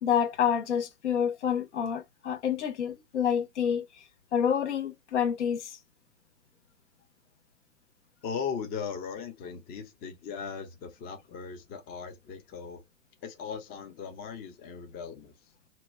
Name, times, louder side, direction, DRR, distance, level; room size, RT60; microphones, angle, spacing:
voice 1, 0.0-3.8 4.3-5.8, left 8 dB, 60° left, 0.9 m, -28 dB
voice 2, 8.2-12.8 13.2-15.3, left 6 dB, 25° left, 0.7 m, -38 dB
3.0 x 2.1 x 4.1 m
figure-of-eight pair, 110°, 39 cm